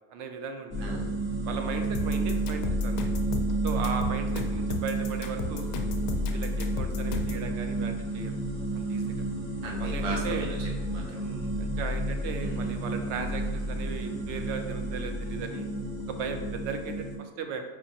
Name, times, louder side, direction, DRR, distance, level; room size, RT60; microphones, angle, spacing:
voice 1, 0.1-0.7 1.5-3.0 3.6-5.7 6.3-8.3 8.7-9.0 9.8-10.5 11.2-15.7 16.1-17.6, right 5 dB, 40° right, 6 dB, 0.5 m, -37 dB
sound 1, 0.7-17.2, right 1 dB, 15° right, 0.8 m, -31 dB
voice 2, 0.8-1.1 9.6-11.2 12.3-12.7, right 3 dB, 70° right, -1 dB, 1.0 m, -37 dB
sound 2, 1.9-7.5, left 5 dB, 40° left, 0.4 m, -35 dB
5.0 x 2.8 x 2.9 m, 1.4 s
supercardioid pair, 155°, 44 cm